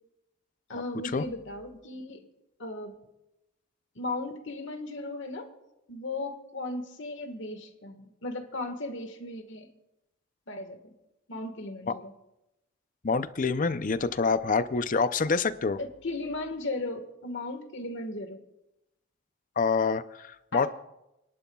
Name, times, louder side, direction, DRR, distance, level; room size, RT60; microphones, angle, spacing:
voice 1, 0.7-2.2 2.6-3.0 3.9-5.5 5.9-9.7 10.5-10.9 11.3-12.1 15.8-18.4 20.5-20.7, left 2 dB, 60° left, 6 dB, 1.5 m, -36 dB
voice 2, 13.0-15.8 19.6-20.7, left 4 dB, 40° left, 13 dB, 0.5 m, -26 dB
30.0 x 11.0 x 2.3 m, 0.90 s
head